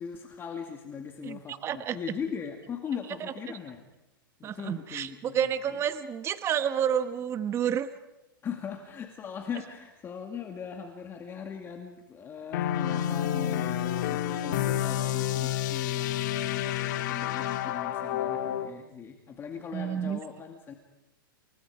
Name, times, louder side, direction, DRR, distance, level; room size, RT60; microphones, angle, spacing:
voice 1, 0.0-3.8 4.4-5.7 8.4-20.7, left 7 dB, 20° left, 3 dB, 2.3 m, -39 dB
voice 2, 1.2-2.0 4.4-7.9 19.7-20.2, right 9 dB, 20° right, 11 dB, 1.1 m, -30 dB
sound 1, 12.5-18.7, left 11 dB, 55° left, 1.9 m, -29 dB
29.0 x 28.5 x 4.9 m, 0.96 s
hypercardioid pair, 140°, 12 cm